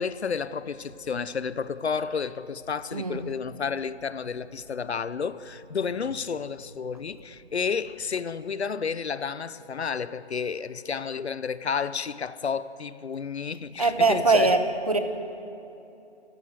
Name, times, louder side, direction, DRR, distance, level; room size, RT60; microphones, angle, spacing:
voice 1, 0.0-14.6, left 6 dB, 75° left, 0.8 m, -31 dB
voice 2, 13.8-15.0, right 3 dB, 35° right, 1.1 m, -22 dB
20.5 x 14.0 x 9.4 m
hypercardioid pair, 180°, 33 cm